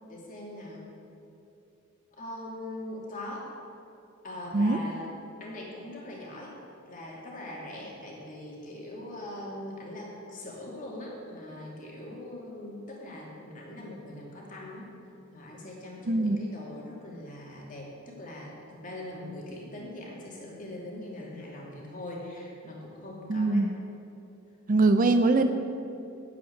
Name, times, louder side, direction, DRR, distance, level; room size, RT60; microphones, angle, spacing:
voice 1, 0.1-0.8 2.2-3.5 4.2-5.1 5.4-6.5 6.8-14.8 15.3-23.7, left 1 dB, 40° left, -3 dB, 2.7 m, -41 dB
voice 2, 16.1-16.4 23.3-23.7 24.7-25.5, right 3 dB, 40° right, 8 dB, 0.5 m, -22 dB
10.0 x 7.8 x 8.4 m, 2.7 s
head